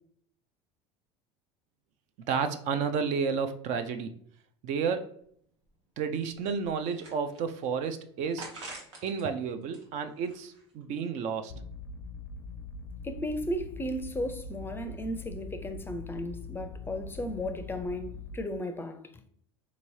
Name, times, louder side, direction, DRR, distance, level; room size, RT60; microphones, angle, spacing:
voice 1, 2.3-4.1 4.6-5.1 6.0-8.5 9.0-11.5, right 6 dB, 60° right, 0.5 m, -31 dB
sound 1, 5.2-5.3 5.7-5.8 6.3-7.7 8.4-9.2 9.6-10.8, right 2 dB, 90° right, 1.1 m, -46 dB
sound 2, 11.5-18.4, left 3 dB, 75° left, 0.5 m, -42 dB
voice 2, 13.0-19.2, left 1 dB, 15° left, 0.5 m, -35 dB
3.8 x 3.0 x 2.7 m
hypercardioid pair, 80°, 14 cm